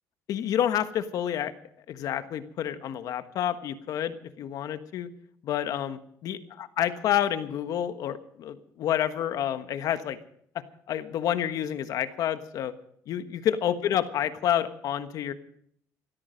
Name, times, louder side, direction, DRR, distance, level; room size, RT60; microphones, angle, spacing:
voice 1, 0.3-1.5 1.9-5.1 5.4-10.2 10.9-12.7 13.1-15.3, left 10 dB, 60° left, 10 dB, 1.4 m, -29 dB
19.0 x 13.5 x 5.2 m, 0.66 s
cardioid pair, 115°, 7 cm